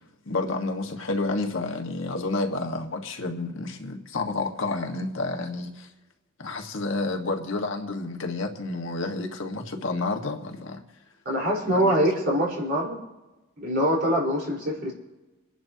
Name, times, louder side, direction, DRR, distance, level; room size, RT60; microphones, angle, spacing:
voice 1, 0.3-5.9 6.4-10.8 11.7-12.0, left 2 dB, 65° left, 2 dB, 1.6 m, -30 dB
voice 2, 11.2-13.0 13.6-14.9, equal, 50° right, -3 dB, 4.4 m, -24 dB
28.0 x 11.0 x 2.9 m, 1.1 s
head